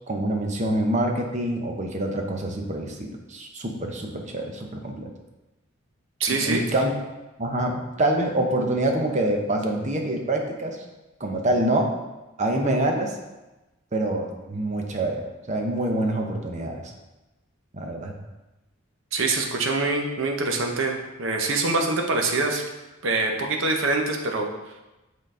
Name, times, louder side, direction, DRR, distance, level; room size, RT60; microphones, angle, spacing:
voice 1, 0.1-5.1 6.3-6.9 7.4-10.8 11.2-11.9 12.4-13.1 13.9-16.8 17.7-18.1, right 1 dB, 35° right, 2 dB, 0.8 m, -26 dB
voice 2, 6.2-6.6 19.1-22.6 23.0-24.5, right 3 dB, 65° right, 2 dB, 0.8 m, -24 dB
7.9 x 3.8 x 3.7 m, 1.1 s
head